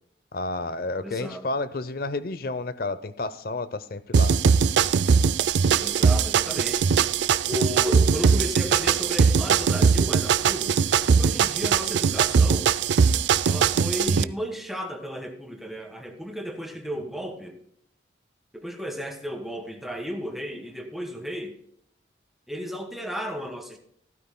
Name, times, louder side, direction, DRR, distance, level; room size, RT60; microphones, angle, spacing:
voice 1, 0.3-4.4, left 2 dB, 55° left, 14 dB, 0.6 m, -31 dB
voice 2, 1.0-1.4 5.8-6.9 7.5-10.8 11.1-12.7 13.4-17.6 18.5-21.6 22.5-23.8, equal, ahead, 3 dB, 1.4 m, -33 dB
sound 1, 4.1-14.2, right 6 dB, 80° right, 0.4 m, -21 dB
15.5 x 13.5 x 2.2 m, 0.69 s
head